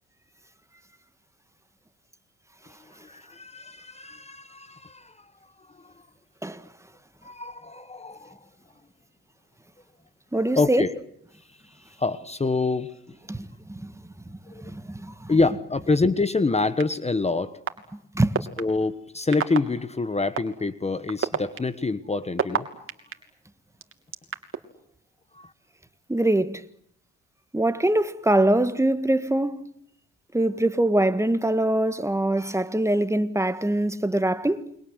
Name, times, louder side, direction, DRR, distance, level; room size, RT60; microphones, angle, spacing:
voice 1, 3.0-5.2 5.7-5.9 7.2-8.4 10.6-10.9 12.0-12.9 14.5-14.6 15.3-17.6 18.6-22.7 25.3-25.5, left 3 dB, 20° left, 1.3 m, -26 dB
voice 2, 10.3-10.8 13.3-13.9 14.3-15.4 18.1-18.3 26.1-26.6 27.5-29.7 30.3-34.7, right 1 dB, 10° right, 1.7 m, -23 dB
sound 1, 16.8-16.9 17.7-17.8 18.3-18.6 19.3-19.6 20.4-20.5 21.1-23.1 23.8-24.6, right 7 dB, 45° right, 3.1 m, -25 dB
29.5 x 23.0 x 8.1 m
cardioid pair, 90°, 30 cm